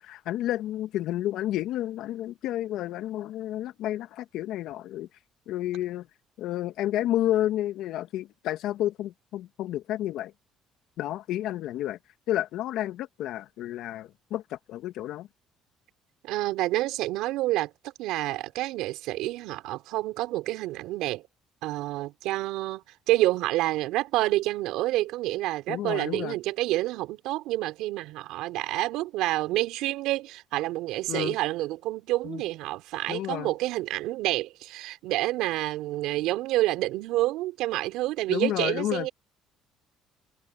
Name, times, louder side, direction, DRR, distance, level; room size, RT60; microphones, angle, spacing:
voice 1, 0.0-5.1 5.5-6.1 6.4-10.3 11.0-12.0 12.3-15.3 25.7-26.4 31.1-31.4 32.2-32.4 33.1-33.5 38.3-39.1, left 13 dB, 70° left, 2.0 m, -30 dB
voice 2, 16.2-21.2 21.6-39.1, right 17 dB, 80° right, 3.8 m, -28 dB
supercardioid pair, 70°, 0 cm